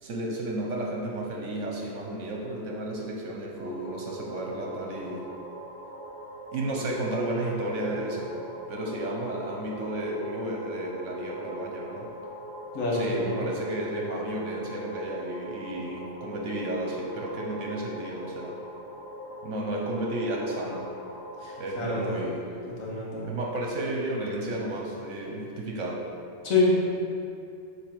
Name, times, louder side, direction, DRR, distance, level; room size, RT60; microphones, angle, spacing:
voice 1, 0.0-5.3 6.5-8.3 8.7-12.1 12.9-18.6 19.4-20.9 21.6-22.4 23.2-26.0, right 1 dB, 65° right, -1 dB, 1.1 m, -32 dB
sound 1, 3.5-22.1, equal, 25° left, 1.3 m, -42 dB
voice 2, 12.7-13.3 21.4-22.1 22.6-23.3 26.4-26.8, left 2 dB, 90° left, -5 dB, 1.7 m, -26 dB
7.1 x 4.7 x 4.6 m, 2.5 s
omnidirectional pair, 1.4 m